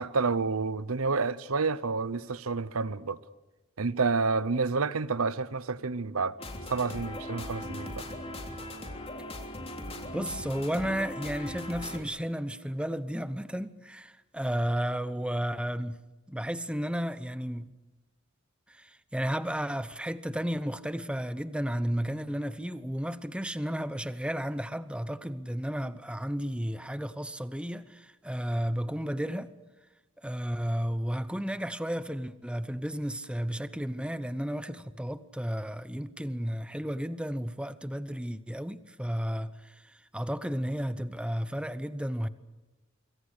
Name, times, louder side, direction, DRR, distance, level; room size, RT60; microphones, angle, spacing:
voice 1, 0.0-3.2 3.8-6.4 6.7-8.0, right 4 dB, 85° right, 0.9 m, -29 dB
sound 1, 6.4-12.0, left 1 dB, 30° left, 3.3 m, -39 dB
voice 2, 10.1-17.7 18.7-29.5 30.2-42.3, equal, 5° right, 0.9 m, -33 dB
26.5 x 23.0 x 6.6 m
head